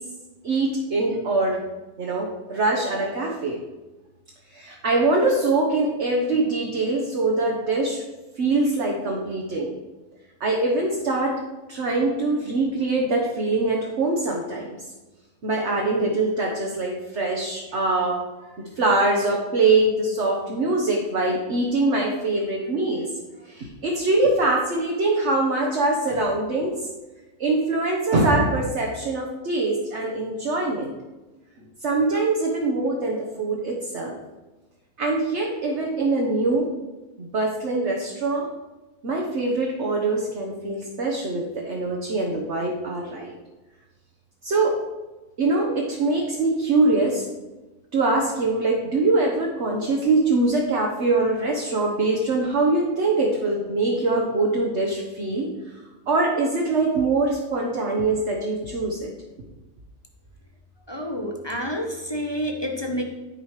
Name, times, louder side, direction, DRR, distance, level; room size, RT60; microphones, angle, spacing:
voice 1, 0.4-1.6 2.0-3.6 4.5-8.0 8.4-9.8 10.4-11.4 11.7-14.8 15.4-18.2 18.5-23.1 23.4-26.9 27.4-30.9 31.8-34.2 35.0-36.7 37.2-38.5 39.0-43.3 44.4-44.8 45.4-47.2 47.9-55.5 56.1-59.1, right 2 dB, 50° right, -1 dB, 1.4 m, -23 dB
voice 2, 60.9-63.0, equal, 20° left, 1 dB, 0.9 m, -29 dB
13.0 x 5.0 x 4.9 m, 1.1 s
omnidirectional pair, 1.6 m